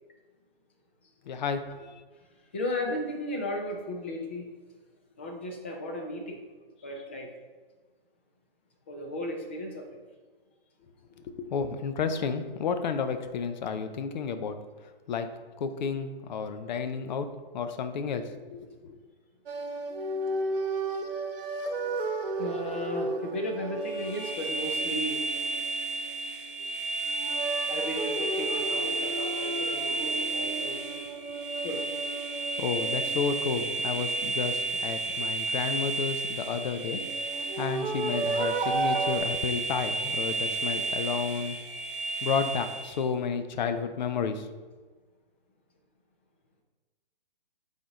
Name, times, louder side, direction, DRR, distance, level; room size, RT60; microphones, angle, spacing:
voice 1, 1.3-2.0 11.2-14.6 15.1-15.3 15.6-17.3 17.5-19.0 32.6-37.0 37.5-41.5 42.2-44.5, left 6 dB, 50° left, 9 dB, 0.6 m, -31 dB
voice 2, 2.5-4.5 5.2-6.4 6.8-7.3 8.9-10.0 22.4-25.2 27.7-30.8 31.6-31.8, left 1 dB, 15° left, 2 dB, 0.3 m, -35 dB
sound 1, 19.5-26.5 27.0-34.8 36.5-39.2, right 3 dB, 65° right, 1.0 m, -34 dB
sound 2, 23.8-43.1, right 3 dB, ahead, 1.6 m, -32 dB
8.5 x 4.1 x 3.0 m, 1.4 s
hypercardioid pair, 145°, 29 cm